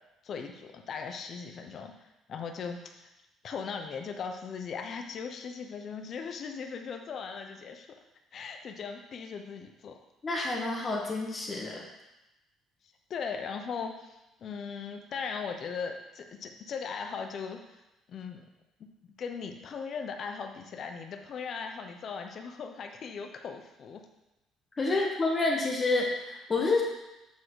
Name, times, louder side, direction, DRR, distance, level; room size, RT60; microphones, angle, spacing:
voice 1, 0.2-3.1 3.4-7.9 8.3-10.0 13.1-17.8 18.1-18.5 18.8-24.0 24.9-25.2, left 5 dB, 50° left, 4 dB, 0.8 m, -39 dB
voice 2, 10.2-11.9 24.8-26.8, left 3 dB, 25° left, 0 dB, 1.2 m, -28 dB
7.4 x 3.8 x 6.3 m, 0.96 s
cardioid pair, 110°, 0 cm